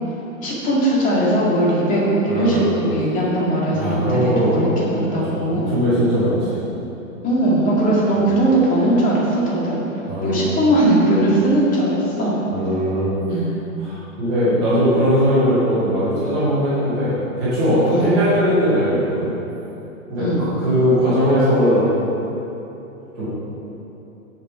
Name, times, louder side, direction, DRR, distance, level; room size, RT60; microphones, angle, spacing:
voice 1, 0.4-5.7 7.2-9.8 10.2-12.4 13.3-13.5 17.9-18.1 20.2-20.4, right 1 dB, 20° left, -5 dB, 2.3 m, -19 dB
voice 2, 2.3-2.7 3.7-4.5 5.1-6.6 10.1-10.4 12.5-13.1 13.8-17.1 17.4-19.3 20.1-21.8 23.2-23.3, equal, 5° right, -12 dB, 0.4 m, -19 dB
16.5 x 6.5 x 4.4 m, 3.0 s
hypercardioid pair, 155°, 43 cm